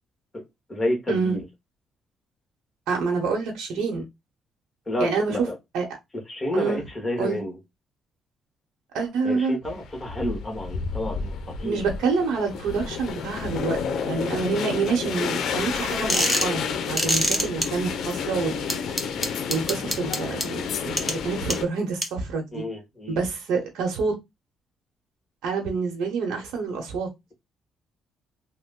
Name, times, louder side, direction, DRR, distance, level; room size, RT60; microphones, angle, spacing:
voice 1, 0.7-1.5 4.9-5.5 6.3-7.6 9.2-11.8 22.5-23.2, left 1 dB, 20° left, 1.5 m, -30 dB
voice 2, 2.9-4.0 5.0-5.4 5.7-5.9 6.5-6.8 7.2-7.4 8.9-9.6 11.6-18.6 19.5-22.6 23.1-24.1 25.4-27.3, right 4 dB, 85° right, 0.9 m, -27 dB
sound 1, 9.7-21.6, left 6 dB, 75° left, 0.5 m, -30 dB
sound 2, 16.1-16.5 17.0-17.7 18.7-20.4 21.0-21.1 21.5-21.6 22.0-22.1, equal, 5° right, 1.0 m, -23 dB
3.0 x 2.1 x 3.6 m
cardioid pair, 90°, 0 cm